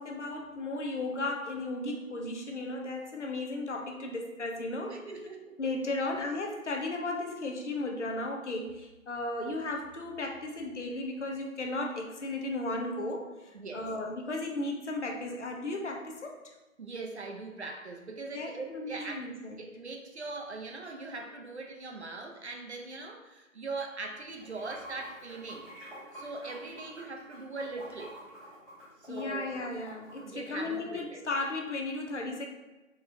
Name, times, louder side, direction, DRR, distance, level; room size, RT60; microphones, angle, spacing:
voice 1, 0.0-5.1 5.6-16.4 18.3-19.6 29.1-32.5, left 2 dB, 55° left, 1 dB, 0.7 m, -35 dB
voice 2, 4.9-5.6 6.0-6.1 13.5-13.9 16.8-19.3 19.6-25.7 26.1-28.2 29.0-29.5 30.2-31.2, right 3 dB, 55° right, 2 dB, 0.5 m, -41 dB
Water / Sink (filling or washing), 24.3-30.8, right 1 dB, 5° left, 0.8 m, -48 dB
3.9 x 3.0 x 2.5 m, 1.1 s
figure-of-eight pair, 160°, 42 cm